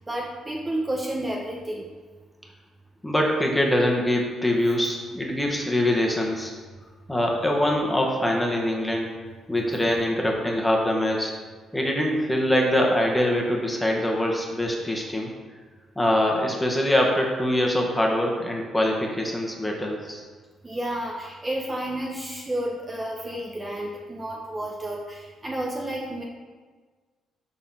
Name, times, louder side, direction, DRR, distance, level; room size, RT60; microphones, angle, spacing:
voice 1, 0.1-1.9 20.6-26.2, right 1 dB, 20° right, -2 dB, 1.0 m, -31 dB
voice 2, 3.0-6.5 7.1-9.1 9.5-11.3 11.7-15.3 15.9-20.2, left 1 dB, 10° left, 0 dB, 1.6 m, -23 dB
11.5 x 4.1 x 4.4 m, 1.4 s
cardioid pair, 90°, 0 cm